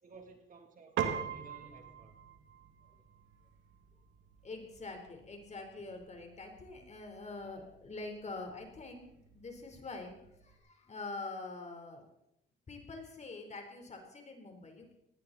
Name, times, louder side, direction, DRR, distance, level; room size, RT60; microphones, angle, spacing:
voice 1, 0.0-2.1, right 4 dB, 40° right, 3 dB, 3.0 m, -56 dB
Piano, 1.0-10.6, right 8 dB, 80° right, 2.1 m, -44 dB
voice 2, 4.4-12.1 12.7-14.9, left 3 dB, 35° left, 4 dB, 4.0 m, -45 dB
19.0 x 16.0 x 4.2 m, 0.83 s
cardioid pair, 90°, 20 cm